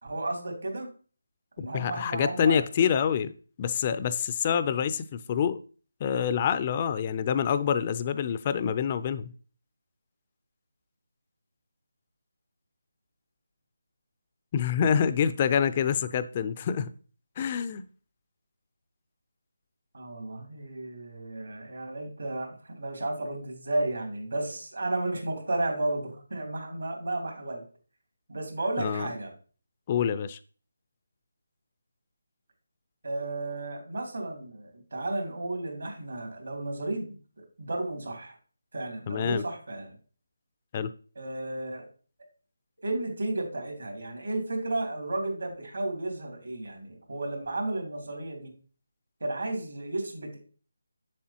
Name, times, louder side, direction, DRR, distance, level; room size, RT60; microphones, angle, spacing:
voice 1, 0.0-0.9 1.6-2.6 19.9-27.6 28.3-29.3 33.0-38.4 38.7-39.9 41.1-41.8 42.8-48.5 49.2-50.4, right 2 dB, 75° right, 3.1 m, -33 dB
voice 2, 1.7-3.3 3.6-5.6 6.0-9.3 14.5-16.9 17.4-17.8 28.8-29.1 29.9-30.4 39.1-39.4 40.7-40.9, left 7 dB, 25° left, 0.4 m, -26 dB
7.5 x 7.1 x 2.9 m
figure-of-eight pair, 160°, 0 cm